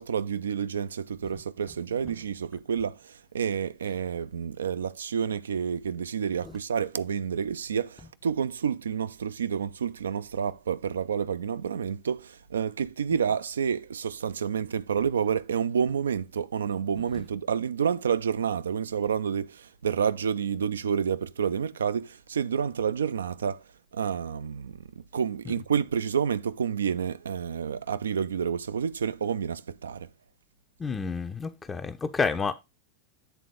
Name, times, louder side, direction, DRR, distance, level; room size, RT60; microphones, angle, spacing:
voice 1, 0.0-23.6 23.9-24.8 25.1-30.1, right 7 dB, 70° right, 0.4 m, -29 dB
voice 2, 30.8-32.6, left 5 dB, 15° left, 0.5 m, -29 dB
8.3 x 3.7 x 4.9 m
figure-of-eight pair, 90°, 0 cm